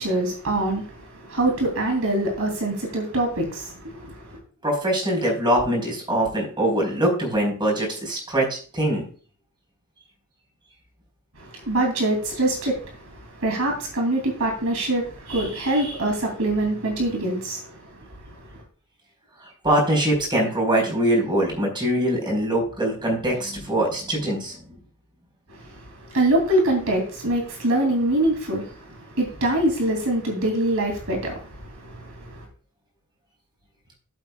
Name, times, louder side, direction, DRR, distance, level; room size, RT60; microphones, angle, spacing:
voice 1, 0.0-4.4 11.4-18.6 25.6-32.5, right 1 dB, 70° right, 3.0 m, -25 dB
voice 2, 4.6-9.0 19.4-24.6, right 1 dB, 20° right, 4.7 m, -23 dB
15.5 x 8.0 x 2.4 m
head